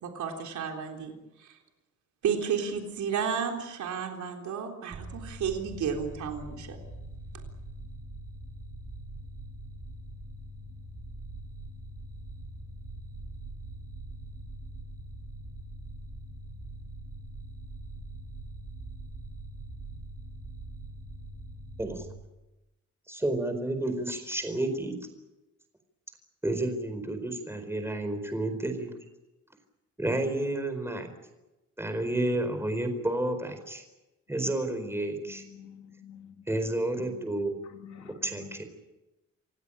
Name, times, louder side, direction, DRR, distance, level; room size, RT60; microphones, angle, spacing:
voice 1, 0.0-1.1 1.4-1.6 2.2-6.8, right 7 dB, 75° right, 2 dB, 3.9 m, -32 dB
sound 1, 4.9-22.1, right 1 dB, 30° right, 6.5 m, -43 dB
voice 2, 23.1-24.9 26.4-28.9 30.0-31.1 31.8-33.8 34.3-35.4 36.5-37.6 38.2-38.6, right 1 dB, 10° right, 7 dB, 4.6 m, -30 dB
voice 3, 35.2-36.5 37.0-37.3 37.6-38.6, left 8 dB, 75° left, 4 dB, 2.6 m, -49 dB
28.0 x 17.5 x 8.8 m, 1.0 s
cardioid pair, 130°, 29 cm